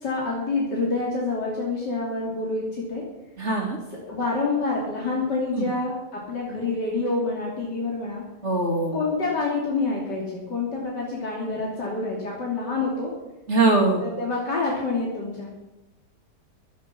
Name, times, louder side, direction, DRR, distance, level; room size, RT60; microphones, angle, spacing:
voice 1, 0.0-3.0 4.0-8.2 8.9-13.1 14.0-15.5, left 3 dB, 75° left, -3 dB, 3.4 m, -27 dB
voice 2, 3.4-3.8 5.5-5.6 8.4-8.9 13.5-14.0, right 3 dB, 40° right, 2 dB, 2.9 m, -21 dB
14.5 x 11.5 x 6.0 m, 0.98 s
omnidirectional pair, 1.8 m